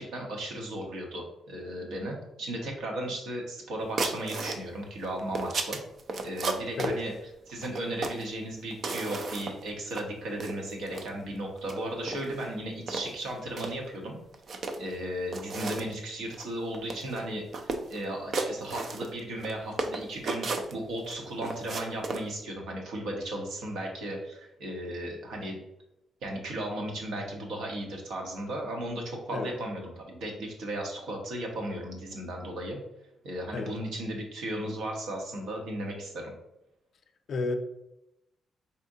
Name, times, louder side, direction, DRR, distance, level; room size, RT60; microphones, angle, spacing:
voice 1, 0.0-5.8 6.2-7.1 7.5-14.2 14.8-17.4 17.9-25.6 26.2-32.8 33.2-36.3, right 1 dB, 85° right, 1 dB, 1.1 m, -35 dB
sound 1, 4.0-4.6 5.0-7.0 7.6-8.3 8.7-9.6 9.9-10.0 10.4-11.1 11.6-11.8 12.1-12.4 12.9-13.7 14.3-14.9 15.3-15.9 16.3-16.5 16.7-17.2 17.5-18.0 18.3-19.5 19.8-21.1 21.4-22.2, right 3 dB, 40° right, 0.4 m, -33 dB
voice 2, 6.8-7.0 29.3-29.5 33.5-33.7 37.3-37.6, left 3 dB, 45° left, 6 dB, 0.4 m, -31 dB
4.3 x 3.6 x 2.7 m, 0.88 s
cardioid pair, 170°, 0 cm